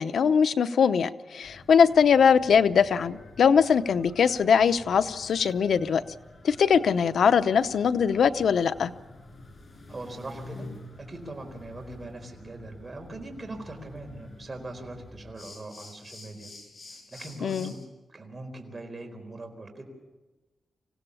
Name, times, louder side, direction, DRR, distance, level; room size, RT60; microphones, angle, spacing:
voice 1, 0.0-6.0 6.4-8.9 17.4-17.7, left 6 dB, 80° left, 12 dB, 0.7 m, -21 dB
sound 1, 1.4-17.9, left 2 dB, 45° left, 5.4 m, -48 dB
voice 2, 9.9-10.7 11.0-16.5 16.9-17.8 18.1-19.8, right 2 dB, 30° right, 3 dB, 4.2 m, -41 dB
25.5 x 16.5 x 7.2 m, 1.2 s
wide cardioid pair, 100°, 0 cm